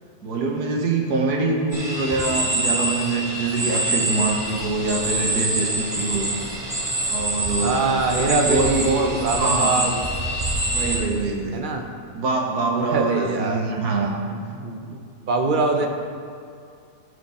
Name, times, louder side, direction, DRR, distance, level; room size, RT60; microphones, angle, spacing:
voice 1, 0.2-6.3 7.1-7.9 8.2-9.9 10.6-11.6 12.1-14.2 15.8-15.9, right 3 dB, 85° right, 1 dB, 1.6 m, -24 dB
sound 1, 1.7-11.0, right 1 dB, 25° right, 1.3 m, -25 dB
voice 2, 7.6-10.0 11.5-11.9 12.9-13.6 14.3-15.0 15.3-15.9, right 3 dB, 45° right, 4 dB, 0.7 m, -23 dB
15.0 x 5.1 x 4.2 m, 2.3 s
omnidirectional pair, 1.6 m